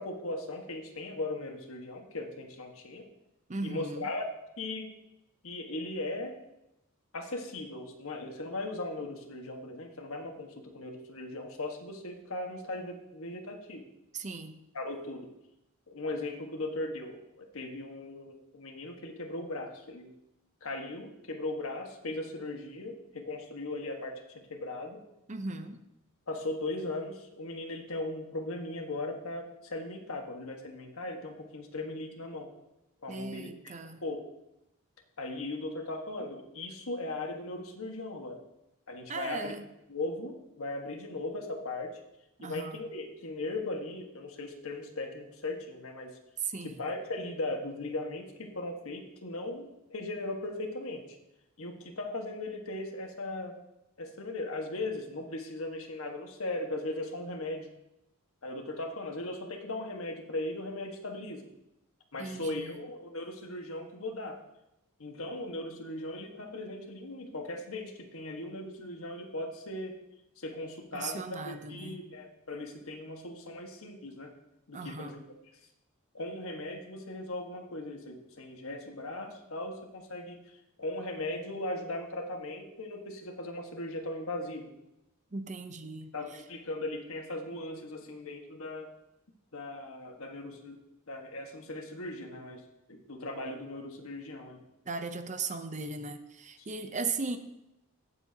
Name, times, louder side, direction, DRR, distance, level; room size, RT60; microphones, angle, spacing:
voice 1, 0.0-3.0 3.6-4.3 4.6-5.0 5.4-6.4 7.1-13.8 14.7-15.3 15.9-20.1 20.6-25.0 26.3-32.5 33.0-34.3 35.2-38.4 38.9-39.5 39.9-42.0 42.4-46.2 46.6-51.2 51.6-53.6 54.0-57.7 58.4-61.5 62.1-64.4 65.0-70.0 70.4-74.3 74.7-75.2 76.1-80.4 80.8-84.7 86.1-88.9 89.5-92.6 92.9-94.6 96.6-96.7, left 2 dB, 70° left, 3 dB, 1.5 m, -38 dB
voice 2, 3.5-4.1 14.1-14.6 25.3-25.8 33.1-34.0 39.1-39.7 42.4-42.9 46.4-46.8 62.2-62.8 70.9-72.1 74.7-75.2 85.3-86.1 94.9-97.4, right 4 dB, 35° right, 9 dB, 0.7 m, -37 dB
17.0 x 7.3 x 2.9 m, 0.88 s
head